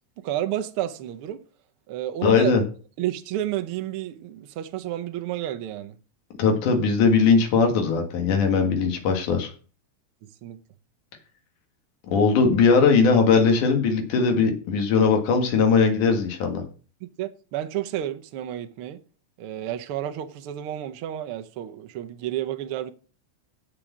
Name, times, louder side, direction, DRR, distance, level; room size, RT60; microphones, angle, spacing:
voice 1, 0.2-1.4 1.9-2.6 3.0-6.0 10.2-10.6 17.0-19.0 19.4-22.9, right 12 dB, 75° right, 1.3 m, -31 dB
voice 2, 2.2-2.6 6.4-9.5 12.1-16.6, left 5 dB, 80° left, 3.2 m, -20 dB
7.5 x 6.9 x 7.2 m
omnidirectional pair, 3.5 m